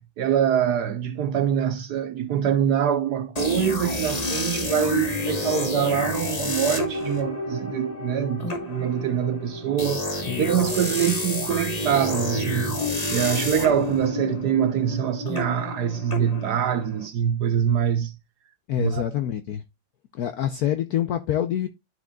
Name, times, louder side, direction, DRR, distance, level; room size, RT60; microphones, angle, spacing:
voice 1, 0.0-10.1 10.4-12.8 13.1-18.2 18.8-19.0, right 9 dB, 70° right, 1.0 m, -24 dB
sound 1, 3.4-17.1, left 2 dB, 25° left, 0.9 m, -29 dB
voice 2, 18.7-19.6 20.1-21.7, left 10 dB, 75° left, 0.8 m, -26 dB
13.0 x 5.0 x 2.3 m
omnidirectional pair, 2.2 m